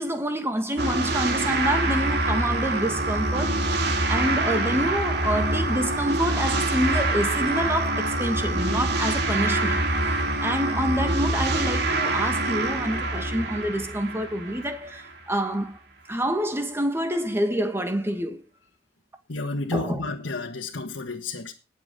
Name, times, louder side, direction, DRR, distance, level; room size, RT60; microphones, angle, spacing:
voice 1, 0.0-3.6 4.1-9.8 10.4-15.8 16.1-18.4 19.7-20.0, equal, 15° right, 1.9 m, -27 dB
sound 1, 0.8-15.1, right 2 dB, 60° right, 2.5 m, -25 dB
voice 2, 19.3-21.5, left 3 dB, 80° left, 1.7 m, -31 dB
19.5 x 7.4 x 3.9 m
head